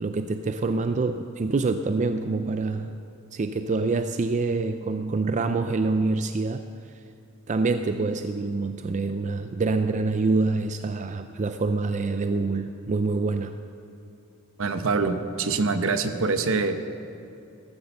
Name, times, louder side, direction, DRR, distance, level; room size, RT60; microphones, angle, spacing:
voice 1, 0.0-3.0 3.3-6.6 7.5-13.6, right 3 dB, 35° right, 8 dB, 0.4 m, -26 dB
voice 2, 14.6-16.9, right 4 dB, 70° right, 9 dB, 0.9 m, -25 dB
14.5 x 14.0 x 5.5 m, 2.7 s
head